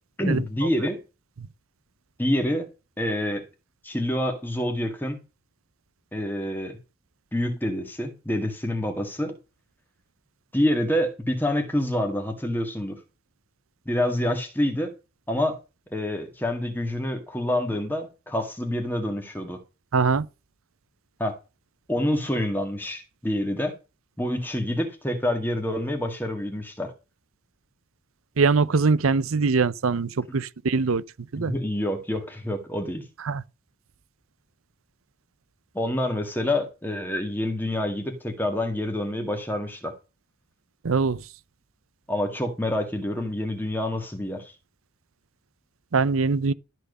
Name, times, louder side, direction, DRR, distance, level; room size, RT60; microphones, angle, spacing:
voice 1, 0.2-1.0 2.2-2.7 3.0-3.4 3.8-5.2 6.1-6.8 7.3-9.3 10.5-13.0 13.9-14.9 15.3-15.6 15.9-19.6 21.2-21.4 21.9-23.7 24.2-26.9 31.4-33.1 35.7-39.9 42.1-44.5, left 1 dB, 10° left, 2.0 m, -27 dB
voice 2, 19.9-20.3 28.4-31.0 31.3-31.5 33.2-33.4 40.8-41.2 45.9-46.5, right 4 dB, 85° right, 0.6 m, -22 dB
13.0 x 4.6 x 6.7 m
head